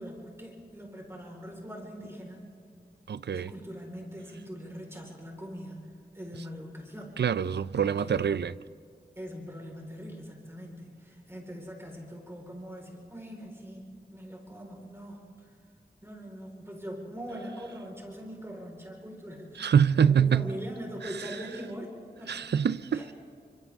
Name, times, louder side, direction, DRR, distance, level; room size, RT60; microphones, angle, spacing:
voice 1, 0.0-2.5 3.3-7.2 7.8-8.2 9.2-15.5 16.0-22.4 22.9-23.1, equal, 15° right, 4.6 m, -42 dB
voice 2, 3.1-3.5 7.2-8.5 19.6-20.4 22.3-23.0, right 7 dB, 85° right, 0.5 m, -25 dB
29.5 x 25.5 x 3.6 m
wide cardioid pair, 85°, 17 cm